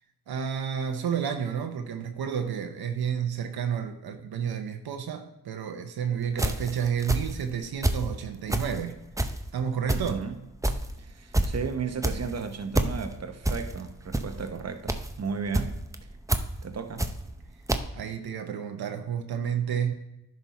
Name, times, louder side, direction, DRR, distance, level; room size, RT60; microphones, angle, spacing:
voice 1, 0.3-8.9 9.5-10.3 17.9-19.9, right 8 dB, 75° right, 6 dB, 0.8 m, -30 dB
sound 1, 6.3-8.1 8.4-17.4 17.7-17.8, right 1 dB, 10° right, 0.6 m, -28 dB
voice 2, 9.9-10.4 11.0-15.8 16.6-17.1, right 5 dB, 45° right, 6 dB, 0.9 m, -34 dB
10.5 x 5.3 x 4.1 m, 0.88 s
cardioid pair, 65°, 37 cm